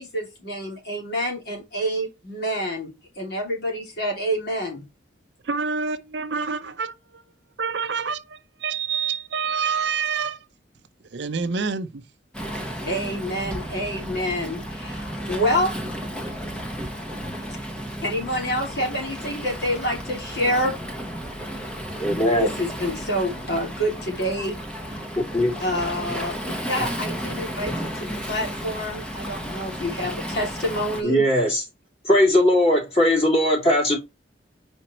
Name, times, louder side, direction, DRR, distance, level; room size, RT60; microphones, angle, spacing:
voice 1, 0.0-4.8 12.8-15.7 18.0-20.7 22.4-24.6 25.6-26.3 26.7-31.2, equal, 60° left, 3.1 m, -27 dB
voice 2, 5.4-6.9 7.6-8.2 8.6-10.4 11.1-12.0, right 5 dB, 65° right, 0.6 m, -27 dB
Waves surf, 12.3-31.0, equal, 5° left, 1.1 m, -33 dB
voice 3, 22.0-22.5 25.3-25.5 31.0-31.6 32.1-34.0, left 1 dB, 35° left, 3.5 m, -19 dB
5.0 x 4.4 x 4.3 m
head